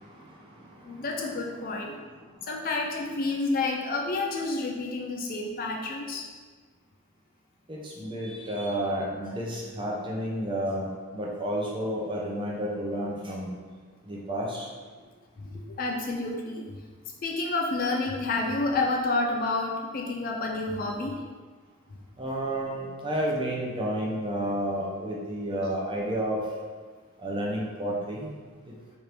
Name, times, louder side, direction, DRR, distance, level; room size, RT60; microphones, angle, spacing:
voice 1, 0.8-1.9 2.4-6.3 15.4-16.8 17.2-21.2 25.7-25.8, left 3 dB, 40° left, 1 dB, 0.3 m, -29 dB
voice 2, 7.7-10.9 11.1-13.5 14.1-14.7 22.2-26.4 27.2-28.3, right 1 dB, 20° right, -3 dB, 0.6 m, -31 dB
3.3 x 2.7 x 4.4 m, 1.5 s
head